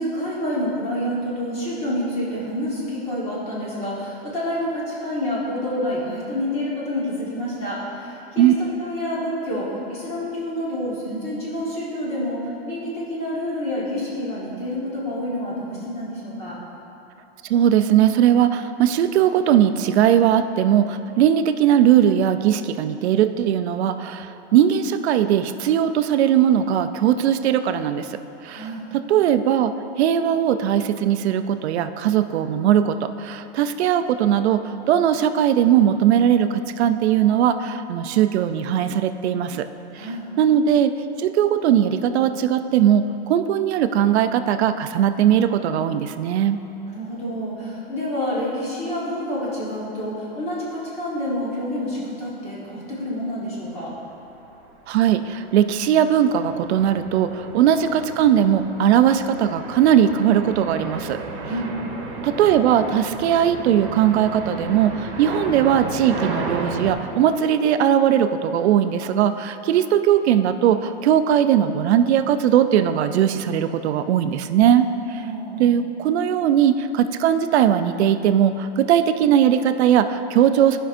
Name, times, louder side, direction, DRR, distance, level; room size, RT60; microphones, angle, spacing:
voice 1, 0.0-16.6 28.5-28.8 40.0-40.3 46.9-53.9 61.4-61.8 75.1-75.7, left 1 dB, 20° left, -6 dB, 1.4 m, -28 dB
voice 2, 17.5-24.3 24.5-28.1 28.4-28.7 28.9-29.7 30.0-39.7 40.4-40.9 41.2-46.6 54.9-61.2 62.2-74.9 75.6-80.8, right 10 dB, 75° right, 10 dB, 0.5 m, -19 dB
sound 1, 53.9-54.1 54.6-66.9, right 3 dB, 50° right, 1.2 m, -34 dB
12.5 x 5.4 x 2.6 m, 2.9 s
supercardioid pair, 170°, 33 cm